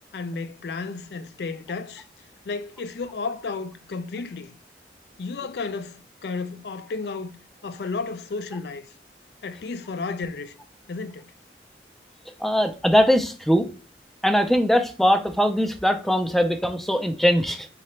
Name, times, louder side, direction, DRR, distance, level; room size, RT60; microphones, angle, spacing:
voice 1, 0.1-2.1 2.5-4.6 5.2-7.4 7.6-8.9 9.4-10.5 10.9-11.2, left 4 dB, 65° left, 0.4 m, -32 dB
voice 2, 12.4-13.7 14.2-17.7, equal, ahead, 0.4 m, -21 dB
3.8 x 3.2 x 3.2 m
head